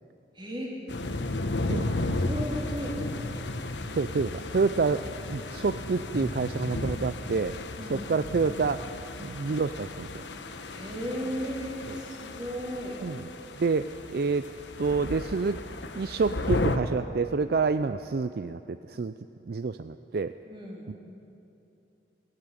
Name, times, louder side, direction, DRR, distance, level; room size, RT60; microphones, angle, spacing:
voice 1, 0.3-0.7 2.2-3.2 4.6-4.7 7.8-8.1 10.6-13.0 20.4-20.9, equal, 25° right, -2 dB, 3.8 m, -35 dB
sound 1, 0.9-16.8, left 2 dB, 85° left, 1.2 m, -34 dB
voice 2, 4.0-7.5 7.9-8.9 9.2-10.2 11.9-12.0 13.0-13.2 13.6-14.5 14.8-15.6 15.9-19.1 19.5-20.3, right 4 dB, 55° right, 11 dB, 0.4 m, -28 dB
17.5 x 16.0 x 9.9 m, 2.8 s
head